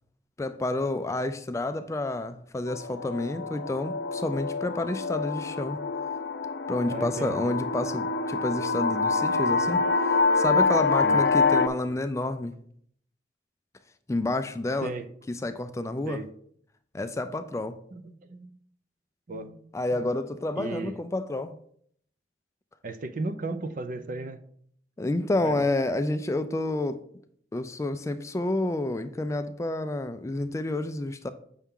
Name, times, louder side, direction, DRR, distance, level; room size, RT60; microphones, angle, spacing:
voice 1, 0.4-5.8 6.7-9.8 10.4-12.5 14.1-14.9 15.3-16.2 16.9-17.8 19.7-21.5 25.0-27.0 27.5-31.3, left 2 dB, 15° left, 10 dB, 0.3 m, -29 dB
sound 1, 2.7-11.7, left 3 dB, 80° left, 0.6 m, -26 dB
voice 2, 6.9-7.5 11.0-11.2 14.8-15.1 16.1-16.3 17.3-17.4 17.9-18.5 19.3-19.6 19.9-20.0 20.6-21.0 22.8-24.4 25.3-25.7, right 3 dB, 50° right, 10 dB, 0.5 m, -35 dB
7.1 x 5.6 x 3.6 m, 0.64 s
head